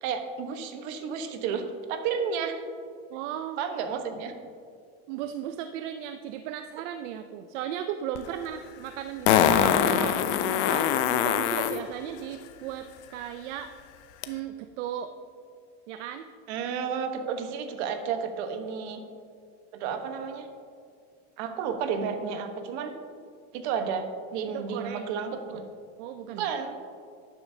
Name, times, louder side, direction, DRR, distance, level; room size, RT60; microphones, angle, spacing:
voice 1, 0.0-2.6 3.6-4.3 16.5-19.0 19.7-20.5 21.4-22.9 23.5-24.0 24.3-25.4 26.4-26.7, right 6 dB, 65° right, 6 dB, 1.1 m, -31 dB
voice 2, 3.1-3.6 5.1-13.7 14.3-15.1 15.9-16.3 24.5-25.1 25.5-25.7 26.0-26.5, right 10 dB, 80° right, 8 dB, 0.6 m, -36 dB
Fart, 8.2-8.3 9.3-11.8 14.2-14.3, left 9 dB, 70° left, 0.7 m, -23 dB
12.5 x 9.9 x 2.7 m, 2.2 s
cardioid pair, 175°, 36 cm